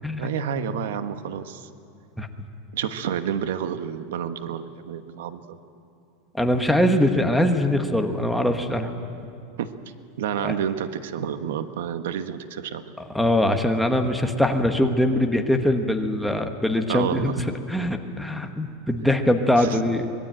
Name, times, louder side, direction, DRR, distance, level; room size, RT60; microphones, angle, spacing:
voice 1, 0.2-1.7 2.7-5.6 9.6-9.7 10.2-12.8 16.9-17.4 19.6-19.8, right 8 dB, 85° right, 10 dB, 1.2 m, -29 dB
voice 2, 6.3-8.9 10.4-10.5 13.1-20.1, left 1 dB, ahead, 4 dB, 1.0 m, -22 dB
24.5 x 20.0 x 8.9 m, 2.6 s
supercardioid pair, 180°, 0 cm